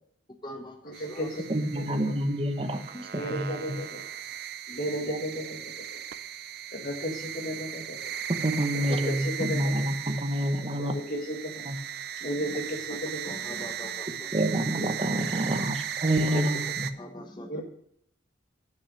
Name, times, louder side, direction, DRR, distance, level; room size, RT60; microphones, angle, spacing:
voice 1, 0.3-1.3 2.9-3.1 4.3-4.4 10.6-10.8 12.2-12.4 13.2-14.3 16.3-16.4 17.0-17.6, left 1 dB, 20° left, 4 dB, 1.0 m, -42 dB
voice 2, 0.8-2.1 3.1-4.0 4.7-6.0 6.7-8.1 8.7-9.9 10.8-11.7 12.2-13.3 14.8-14.9 15.2-15.3 16.2-16.6 17.5-17.6, equal, 50° left, 2 dB, 1.9 m, -34 dB
sound 1, 0.9-16.9, right 9 dB, 55° right, 0.5 m, -37 dB
voice 3, 1.5-2.8 3.1-3.8 5.1-5.2 8.4-10.9 11.7-11.8 14.3-16.9, right 1 dB, 30° right, 6 dB, 0.9 m, -28 dB
8.4 x 6.6 x 6.2 m, 0.70 s
head